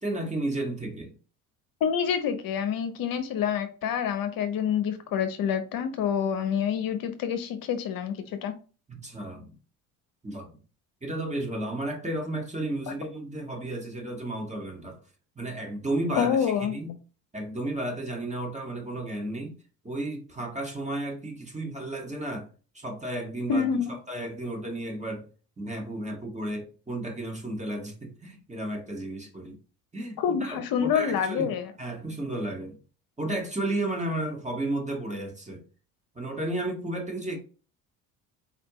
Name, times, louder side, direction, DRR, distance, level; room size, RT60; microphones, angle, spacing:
voice 1, 0.0-1.1 8.9-9.6 10.2-10.5 11.0-15.0 15.3-16.9 17.3-19.5 19.8-22.5 22.7-25.2 25.6-29.6 29.9-31.5 31.8-32.8 33.2-35.6 36.1-37.4, right 1 dB, 15° right, 1.7 m, -33 dB
voice 2, 1.8-8.5 12.9-13.0 16.2-16.7 23.5-23.9 30.2-31.7, left 7 dB, 55° left, 0.7 m, -27 dB
4.4 x 3.3 x 3.0 m
hypercardioid pair, 65°, 42 cm